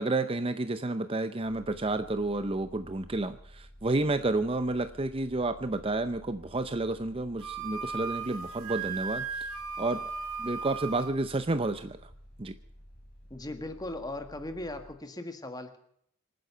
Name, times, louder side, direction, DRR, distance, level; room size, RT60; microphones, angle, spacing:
voice 1, 0.0-9.3 9.8-10.0 10.4-12.0 12.4-12.5, right 2 dB, 25° right, 11 dB, 0.6 m, -30 dB
sound 1, 1.4-14.9, equal, 45° left, 4.8 m, -53 dB
Wind instrument woodwind instrument, 7.4-11.1, right 5 dB, 85° right, 1.9 m, -36 dB
voice 2, 13.3-15.8, left 1 dB, 20° left, 7 dB, 1.7 m, -38 dB
26.0 x 9.5 x 5.5 m, 0.68 s
head